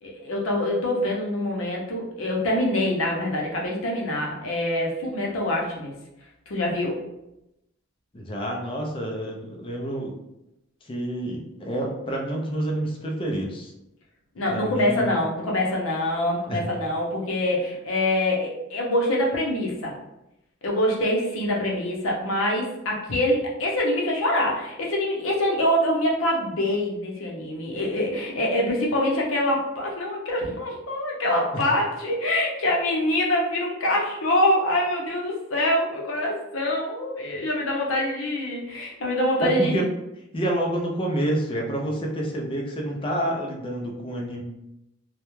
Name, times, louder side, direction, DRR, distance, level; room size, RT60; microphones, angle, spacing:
voice 1, 0.0-5.9 6.5-7.0 14.4-20.0 20.6-39.8, left 1 dB, 75° left, -2 dB, 0.6 m, -25 dB
voice 2, 8.1-10.1 10.8-13.7 14.5-15.2 16.5-16.6 31.5-31.6 39.4-39.9 40.3-44.4, right 1 dB, 25° left, 0 dB, 0.4 m, -28 dB
2.3 x 2.1 x 3.0 m, 0.87 s
head